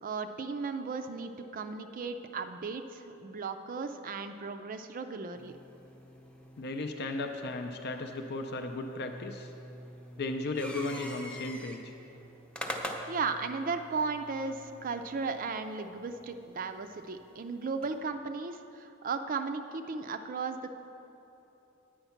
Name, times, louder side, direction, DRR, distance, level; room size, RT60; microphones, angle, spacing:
voice 1, 0.0-5.6 13.1-20.8, right 4 dB, 40° right, 8 dB, 0.4 m, -36 dB
sound 1, 5.3-18.0, equal, 5° left, 0.7 m, -46 dB
voice 2, 6.6-9.5 10.2-11.9, left 2 dB, 50° left, 5 dB, 0.5 m, -35 dB
9.9 x 8.0 x 5.8 m, 3.0 s
head